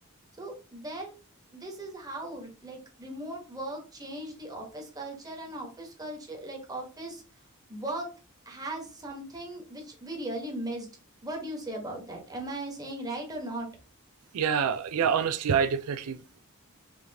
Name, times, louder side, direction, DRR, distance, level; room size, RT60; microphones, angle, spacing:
voice 1, 0.4-1.1 1.5-7.2 7.7-8.1 8.4-10.9 11.2-13.7, right 1 dB, 15° right, 1.3 m, -38 dB
voice 2, 14.3-16.4, right 7 dB, 85° right, 0.4 m, -27 dB
5.8 x 2.9 x 2.9 m
head